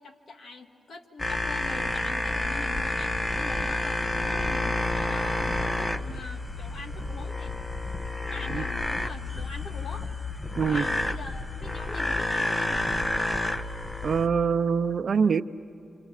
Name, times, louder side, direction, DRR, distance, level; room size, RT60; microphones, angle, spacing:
voice 1, 0.0-7.6 8.3-10.2 10.6-12.9, left 3 dB, 65° left, 5 dB, 2.0 m, -43 dB
sound 1, 1.2-14.3, left 2 dB, 20° left, 1.2 m, -29 dB
voice 2, 14.0-15.4, right 6 dB, 60° right, 12 dB, 0.7 m, -24 dB
29.0 x 27.0 x 6.6 m, 2.9 s
cardioid pair, 55°, 0 cm